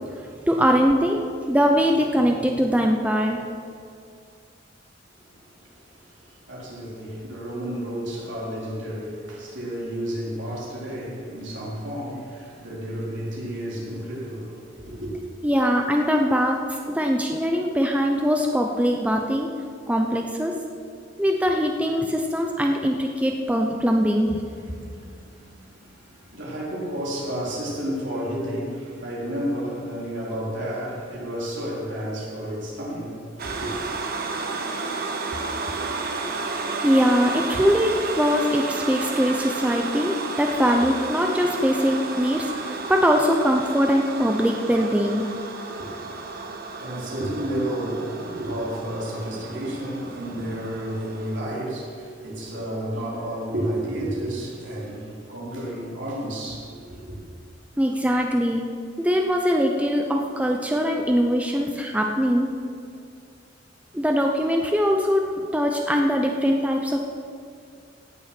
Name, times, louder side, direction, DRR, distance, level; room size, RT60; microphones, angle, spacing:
voice 1, 0.5-3.4 15.4-16.6 16.9-19.5 19.9-20.5 21.2-24.4 36.8-45.2 57.8-58.6 59.0-62.5 63.9-65.3 65.5-67.0, equal, 5° right, 0.7 m, -22 dB
voice 2, 5.3-15.1 24.5-33.7 45.8-57.2, right 1 dB, 70° right, 3.7 m, -32 dB
sound 1, 33.4-51.4, right 3 dB, 50° right, 1.3 m, -32 dB
17.5 x 7.1 x 6.0 m
head